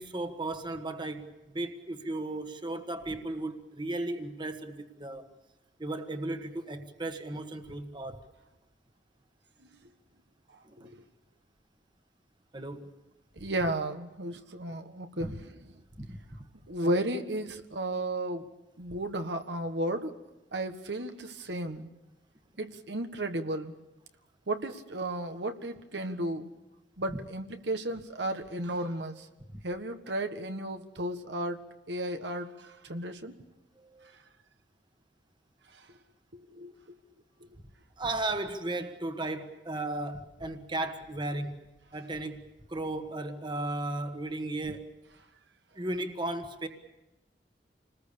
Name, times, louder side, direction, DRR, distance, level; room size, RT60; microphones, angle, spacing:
voice 1, 0.0-5.3 5.8-8.2 10.6-10.9 12.5-12.9 15.2-15.3 16.0-16.4 29.5-29.6 33.8-34.1 38.0-41.6 41.9-42.4 42.7-44.9 45.7-46.7, right 2 dB, 25° right, 1.5 m, -35 dB
voice 2, 13.4-15.7 16.7-18.5 18.8-20.1 20.5-21.9 22.6-23.7 24.5-26.5 27.0-29.3 29.6-31.6 31.9-33.3 35.7-35.9 36.3-37.0, right 1 dB, 80° right, 1.6 m, -34 dB
28.0 x 20.5 x 7.0 m
head